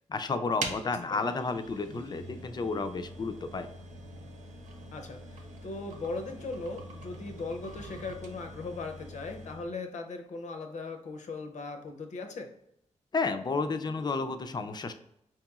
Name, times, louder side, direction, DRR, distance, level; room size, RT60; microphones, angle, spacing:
voice 1, 0.1-3.7 13.1-14.9, left 4 dB, 35° left, 8 dB, 0.4 m, -31 dB
sound 1, 0.6-9.7, right 2 dB, 90° right, 0.6 m, -44 dB
voice 2, 4.9-12.5, left 3 dB, 75° left, 5 dB, 0.6 m, -39 dB
4.6 x 2.9 x 2.3 m, 0.78 s
cardioid pair, 90°, 12 cm